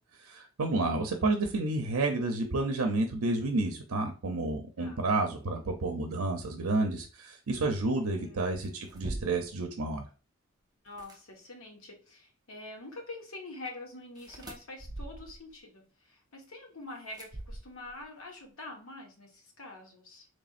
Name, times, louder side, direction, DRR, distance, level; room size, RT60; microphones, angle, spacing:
voice 1, 0.2-10.0, right 2 dB, 85° right, 4 dB, 0.6 m, -30 dB
voice 2, 7.9-9.1 10.8-20.3, left 2 dB, 75° left, 1 dB, 1.2 m, -46 dB
sound 1, 8.6-9.6 10.9-11.2 14.2-15.5 17.1-18.0, right 2 dB, 20° right, 0.5 m, -42 dB
4.1 x 3.3 x 2.4 m, 0.34 s
head